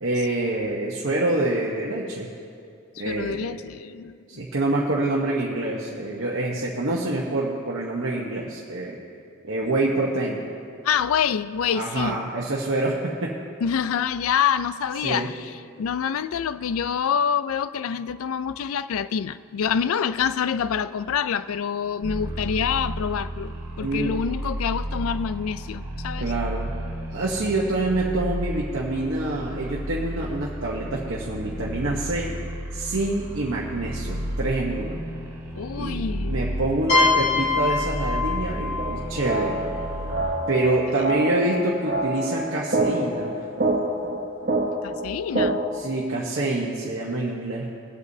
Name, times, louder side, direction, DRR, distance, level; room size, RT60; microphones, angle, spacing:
voice 1, 0.0-2.3 3.0-3.4 4.3-9.0 9.4-10.5 11.7-13.3 15.0-15.3 23.8-24.2 26.2-26.7 27.1-32.3 32.7-35.0 35.8-39.6 40.5-43.3 45.7-47.7, right 2 dB, 65° right, 1.0 m, -26 dB
voice 2, 3.0-4.4 10.8-12.2 13.6-26.3 35.6-36.4 44.8-45.6, left 7 dB, 90° left, 0.4 m, -26 dB
Saber humming, 22.0-40.3, right 1 dB, 20° right, 2.8 m, -33 dB
sound 1, 36.9-40.5, left 4 dB, 35° left, 2.5 m, -25 dB
sound 2, 38.8-45.8, right 2 dB, 45° right, 0.8 m, -27 dB
22.0 x 8.1 x 2.7 m
head